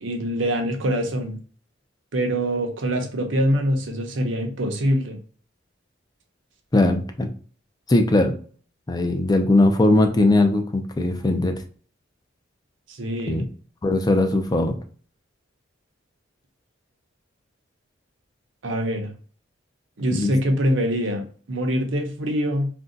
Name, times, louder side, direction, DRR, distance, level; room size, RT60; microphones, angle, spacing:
voice 1, 0.0-1.4 2.1-5.2 12.9-13.4 18.6-19.1 20.0-22.7, equal, 70° right, 3 dB, 0.7 m, -24 dB
voice 2, 6.7-7.3 7.9-8.4 8.9-11.5 13.3-13.5 13.8-14.8 20.1-20.3, left 2 dB, 20° left, 5 dB, 0.4 m, -19 dB
2.6 x 2.2 x 3.8 m, 0.43 s
head